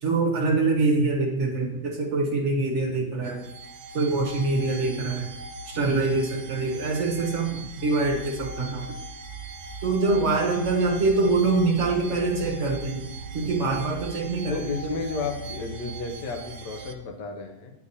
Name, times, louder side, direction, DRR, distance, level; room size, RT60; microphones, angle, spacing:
voice 1, 0.0-3.4 3.9-5.3 5.7-8.9 9.8-13.0 13.3-14.9, right 3 dB, 50° right, 1 dB, 1.1 m, -24 dB
sound 1, 3.2-16.9, right 3 dB, 80° right, 1.2 m, -39 dB
voice 2, 14.5-17.7, left 4 dB, 80° left, 2 dB, 1.4 m, -32 dB
8.1 x 4.9 x 2.7 m, 0.90 s
omnidirectional pair, 1.8 m